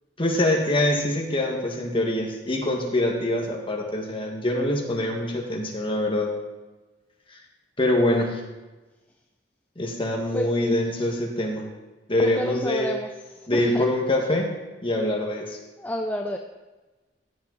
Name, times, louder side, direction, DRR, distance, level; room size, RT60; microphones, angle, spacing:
voice 1, 0.2-6.3 7.8-8.4 9.8-11.7 12.1-12.9 13.5-14.5 14.8-15.6, left 1 dB, 30° left, 0 dB, 1.7 m, -24 dB
voice 2, 10.3-10.8 12.2-13.1 13.5-13.9 15.8-16.4, left 1 dB, 10° left, 3 dB, 0.5 m, -30 dB
15.5 x 7.8 x 4.1 m, 1.2 s
head